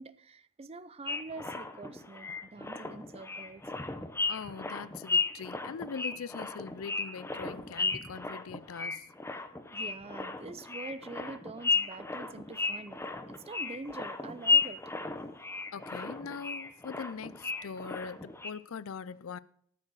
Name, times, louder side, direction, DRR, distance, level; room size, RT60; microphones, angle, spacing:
voice 1, 0.0-3.6 9.7-13.0 13.3-14.8, right 3 dB, 30° right, 0.5 m, -45 dB
sound 1, 1.1-18.5, left 4 dB, 10° left, 0.8 m, -34 dB
voice 2, 4.3-9.1 15.7-19.4, left 6 dB, 70° left, 0.5 m, -42 dB
14.0 x 6.5 x 6.2 m
head